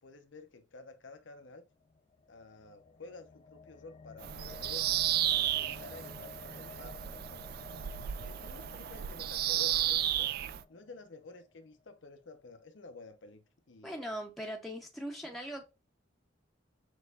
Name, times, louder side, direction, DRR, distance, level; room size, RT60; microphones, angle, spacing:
voice 1, 0.0-1.7 2.3-4.9 5.3-7.5 8.3-10.3 10.7-14.1, left 3 dB, 85° left, 0.8 m, -51 dB
sound 1, 1.7-11.9, left 4 dB, 30° left, 0.3 m, -53 dB
Bird vocalization bird call bird song, 4.2-10.6, right 12 dB, 55° right, 0.3 m, -33 dB
voice 2, 13.8-15.6, equal, ahead, 0.7 m, -40 dB
6.2 x 3.1 x 2.4 m
head